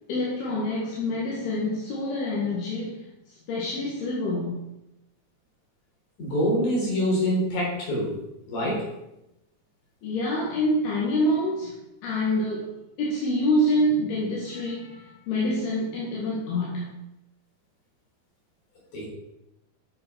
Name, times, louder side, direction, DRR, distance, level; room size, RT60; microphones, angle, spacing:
voice 1, 0.1-3.0 3.5-4.6 10.0-16.9, left 1 dB, 75° left, -4 dB, 3.8 m, -26 dB
voice 2, 6.2-8.1 8.5-8.9 18.9-19.1, equal, 50° left, -4 dB, 5.5 m, -25 dB
11.0 x 6.8 x 6.3 m, 0.89 s
omnidirectional pair, 4.6 m